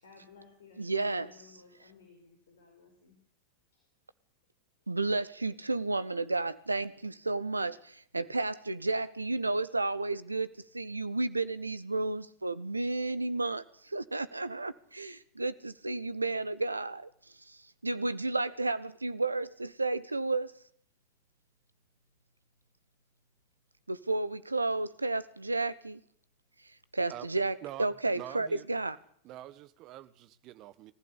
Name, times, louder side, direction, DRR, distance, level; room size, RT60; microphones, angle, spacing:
voice 1, 0.0-3.2 3.7-3.9 4.8-4.9, left 5 dB, 65° left, 5 dB, 4.9 m, -56 dB
voice 2, 0.8-1.3 4.9-17.1 17.5-20.5 23.9-26.0 26.9-29.0, right 2 dB, 80° right, 18 dB, 1.0 m, -32 dB
voice 3, 27.6-28.7 29.2-30.9, right 14 dB, 40° right, 15 dB, 1.4 m, -45 dB
23.0 x 15.0 x 8.7 m, 0.62 s
figure-of-eight pair, 90°, 0 cm